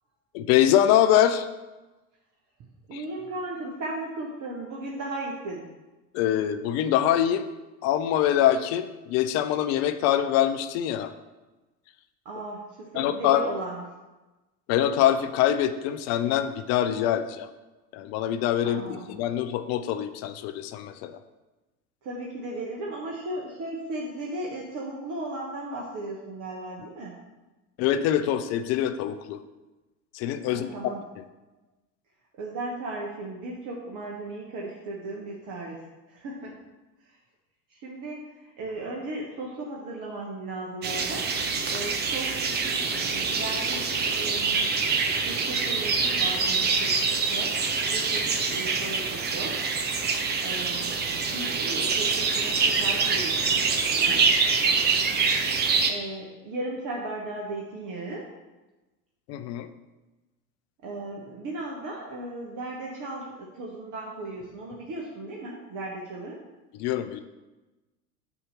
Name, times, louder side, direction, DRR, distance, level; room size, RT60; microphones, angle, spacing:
voice 1, 0.3-1.5 2.9-3.0 6.1-7.5 7.8-11.1 12.9-13.5 14.7-17.5 17.9-21.2 27.8-29.4 30.1-30.7 59.3-59.7 66.7-67.2, left 11 dB, 35° left, 9 dB, 0.4 m, -24 dB
voice 2, 2.9-5.7 12.2-13.8 18.6-19.1 22.0-27.2 30.5-31.0 32.4-35.8 36.1-36.5 37.0-37.2 37.7-41.3 41.7-44.7 45.2-47.0 47.3-49.6 50.4-50.9 51.2-54.3 55.5-58.3 60.8-66.4, right 2 dB, 40° right, -2 dB, 1.2 m, -36 dB
sound 1, 40.8-55.9, right 4 dB, 20° right, 0.6 m, -25 dB
8.1 x 2.9 x 5.6 m, 1.1 s
figure-of-eight pair, 75°, 48 cm